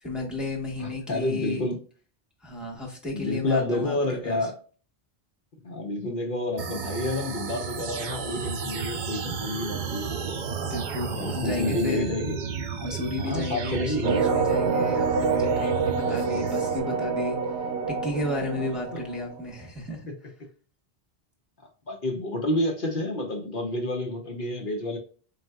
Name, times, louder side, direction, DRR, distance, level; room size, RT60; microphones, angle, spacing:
voice 1, 0.0-1.6 2.4-4.5 10.6-12.1 12.8-17.4 17.9-20.1, left 2 dB, ahead, 1.0 m, -33 dB
voice 2, 0.8-1.8 3.1-4.6 5.6-10.2 11.1-12.3 13.2-14.3 18.6-18.7 18.9-19.0 21.9-25.0, left 2 dB, 60° left, 0.9 m, -29 dB
sound 1, 6.6-16.8, right 6 dB, 55° right, 0.7 m, -33 dB
sound 2, 14.0-19.4, right 5 dB, 85° right, 1.0 m, -26 dB
4.1 x 3.9 x 2.3 m
omnidirectional pair, 1.1 m